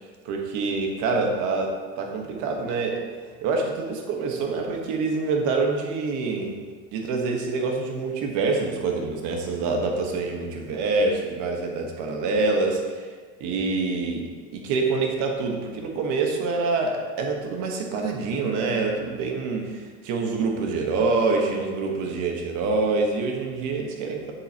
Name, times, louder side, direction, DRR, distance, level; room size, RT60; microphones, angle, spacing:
voice 1, 0.2-3.0 3.4-6.6 6.9-13.1 13.4-24.3, right 3 dB, 55° right, 2 dB, 1.3 m, -26 dB
7.6 x 7.1 x 2.9 m, 1.5 s
cardioid pair, 150°, 35 cm